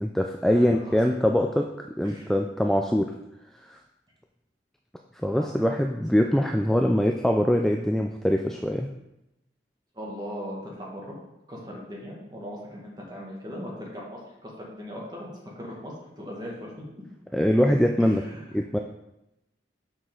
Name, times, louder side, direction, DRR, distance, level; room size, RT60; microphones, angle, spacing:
voice 1, 0.0-1.6 2.0-3.1 3.7-3.8 5.2-8.9 17.3-18.2 18.5-18.8, equal, ahead, 2 dB, 0.3 m, -23 dB
voice 2, 0.5-1.0 2.0-2.3 5.3-5.5 9.9-11.2 11.5-15.3 15.6-16.7 18.0-18.4, equal, 20° right, -3 dB, 1.9 m, -39 dB
7.3 x 6.2 x 3.8 m, 0.89 s
head